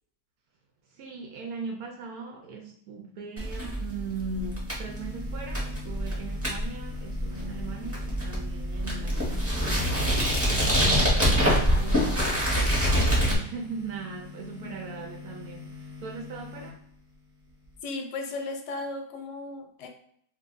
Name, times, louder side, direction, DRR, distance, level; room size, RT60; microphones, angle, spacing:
voice 1, 1.0-10.0 10.5-12.3 12.9-16.8, right 4 dB, 70° right, 2 dB, 0.9 m, -39 dB
sound 1, 3.4-13.3, equal, 10° right, 0.9 m, -25 dB
sound 2, 4.9-17.8, left 5 dB, 35° right, 1.0 m, -45 dB
voice 2, 17.8-19.9, left 3 dB, 80° left, 4 dB, 1.2 m, -35 dB
2.6 x 2.6 x 3.7 m, 0.65 s
omnidirectional pair, 1.9 m